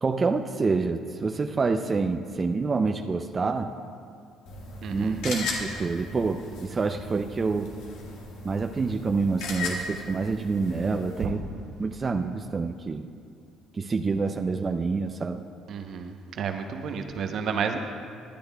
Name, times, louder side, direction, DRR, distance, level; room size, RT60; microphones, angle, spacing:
voice 1, 0.0-3.7 4.9-7.7 8.4-11.4 11.8-13.1 13.7-15.4, right 4 dB, 35° right, 5 dB, 0.5 m, -27 dB
sound 1, 4.5-11.3, left 2 dB, 80° left, 1.7 m, -37 dB
voice 2, 4.8-5.2 11.2-11.3 15.7-17.8, right 6 dB, 60° right, 6 dB, 0.8 m, -31 dB
21.5 x 10.5 x 2.3 m, 2.4 s
supercardioid pair, 70°, 0 cm